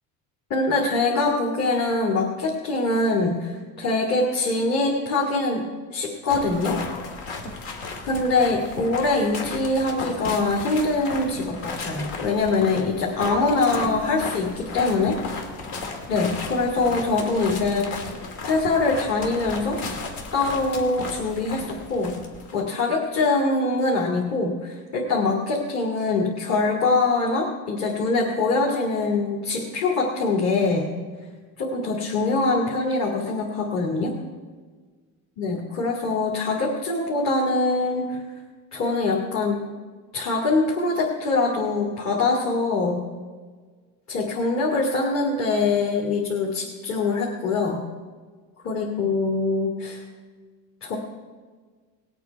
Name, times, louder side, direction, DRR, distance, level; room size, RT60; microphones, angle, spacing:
voice 1, 0.5-5.6 5.9-6.8 8.1-15.2 16.1-18.2 18.4-19.8 20.3-22.2 22.5-30.9 31.6-34.1 35.4-38.2 38.7-39.7 40.1-43.0 44.1-47.8 48.6-50.0 50.8-51.0, left 3 dB, 45° left, -3 dB, 2.4 m, -23 dB
sound 1, 6.3-22.6, left 3 dB, 80° left, 2.2 m, -35 dB
19.5 x 8.5 x 4.7 m, 1.5 s
cardioid pair, 150°, 36 cm